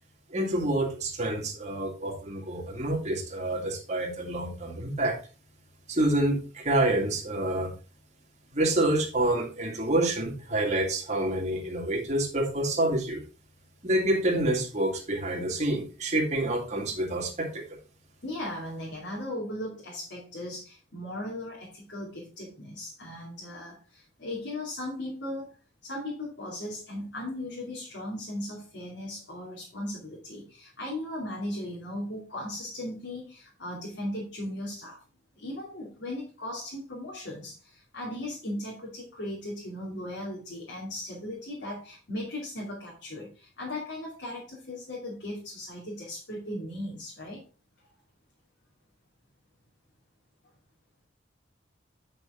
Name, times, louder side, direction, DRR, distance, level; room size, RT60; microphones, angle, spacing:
voice 1, 0.3-5.2 5.9-7.7 8.5-13.2 13.8-17.6, right 1 dB, 40° right, 0 dB, 2.2 m, -27 dB
voice 2, 18.2-25.6 25.8-35.0 35.3-47.4, left 1 dB, 90° left, -4 dB, 2.7 m, -37 dB
8.8 x 6.0 x 3.8 m, 0.34 s
head